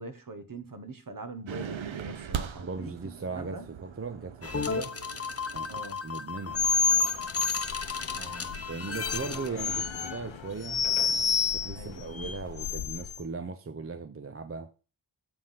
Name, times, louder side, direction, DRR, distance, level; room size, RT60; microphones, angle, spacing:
voice 1, 0.0-3.6 5.7-6.0 8.1-8.7 9.3-10.0 11.7-12.3, right 2 dB, 45° right, 1.0 m, -43 dB
sound 1, 1.5-6.3, right 8 dB, 90° right, 0.7 m, -40 dB
voice 2, 2.6-4.9 5.5-6.7 8.7-10.9 11.5-14.7, right 4 dB, 30° right, 0.5 m, -38 dB
sound 2, 4.4-9.5, left 5 dB, 30° left, 0.7 m, -35 dB
sound 3, 6.5-13.2, left 6 dB, 85° left, 0.7 m, -29 dB
7.8 x 3.5 x 5.6 m
wide cardioid pair, 60°, 45 cm